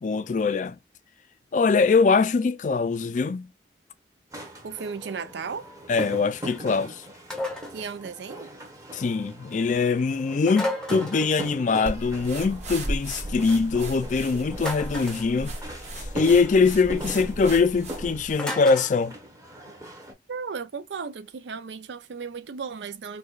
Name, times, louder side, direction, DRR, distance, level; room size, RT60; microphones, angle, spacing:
voice 1, 0.0-0.8 1.5-3.5 5.9-7.0 8.9-15.5 16.0-19.1, left 4 dB, 45° left, 0.4 m, -23 dB
sound 1, 4.3-20.1, right 1 dB, 20° right, 0.9 m, -40 dB
voice 2, 4.6-5.7 7.7-8.5 20.3-23.2, right 5 dB, 80° right, 0.5 m, -35 dB
sound 2, 7.3-7.8 10.5-11.4 14.6-15.3 18.4-19.0, left 1 dB, 5° left, 0.7 m, -32 dB
sound 3, 11.9-18.4, right 1 dB, 40° right, 1.1 m, -35 dB
4.7 x 2.3 x 2.3 m
head